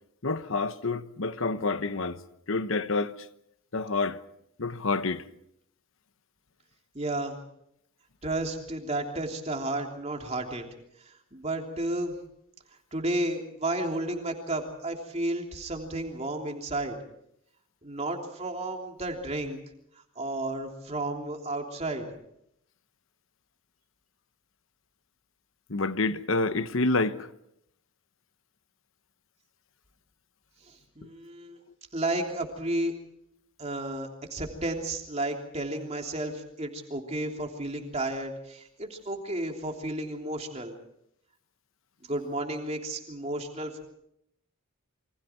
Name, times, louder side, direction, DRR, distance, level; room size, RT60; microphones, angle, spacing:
voice 1, 0.2-2.2 2.5-3.2 3.7-4.2 4.6-5.2 25.7-27.3 31.0-31.1, left 3 dB, 60° left, 1.1 m, -28 dB
voice 2, 6.9-7.4 8.2-10.6 11.0-12.1 12.9-17.0 17.8-19.6 19.9-22.1 30.6-31.6 31.9-32.9 33.6-40.7 42.0-43.9, right 1 dB, 30° right, 3.2 m, -32 dB
28.5 x 24.5 x 4.6 m
head